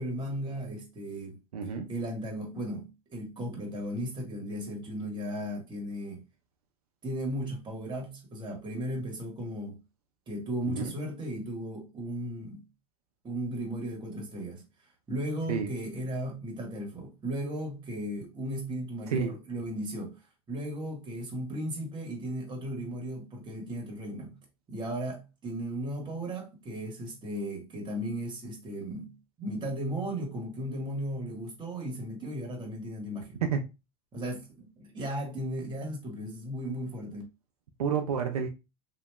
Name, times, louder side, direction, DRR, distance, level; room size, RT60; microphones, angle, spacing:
voice 1, 0.0-1.4 1.9-6.2 7.0-9.8 10.3-12.6 13.2-14.6 15.1-20.1 20.5-24.4 24.7-33.4 34.1-37.2, equal, 25° right, 1.3 m, -36 dB
voice 2, 1.5-1.9 10.7-10.9 15.5-15.7 19.1-19.3 33.4-33.6 37.8-38.5, right 7 dB, 80° right, 0.5 m, -29 dB
2.9 x 2.5 x 2.2 m
hypercardioid pair, 90°, 19 cm